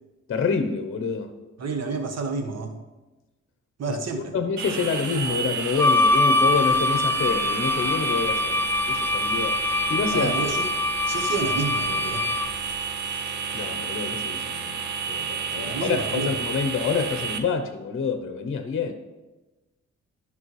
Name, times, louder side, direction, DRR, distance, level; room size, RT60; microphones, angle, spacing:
voice 1, 0.3-1.3 3.9-4.0 4.3-9.6 9.9-10.3 13.5-18.9, left 5 dB, 45° left, 7 dB, 0.8 m, -27 dB
voice 2, 1.6-2.8 3.8-4.3 10.1-10.7 11.1-12.3 15.6-16.4, right 4 dB, 60° right, 5 dB, 1.2 m, -29 dB
sound 1, 4.6-17.4, right 6 dB, 80° right, 0.8 m, -30 dB
Wind instrument woodwind instrument, 5.8-12.6, left 2 dB, 10° left, 0.4 m, -24 dB
11.0 x 5.5 x 3.2 m, 1.1 s
cardioid pair, 65°, 30 cm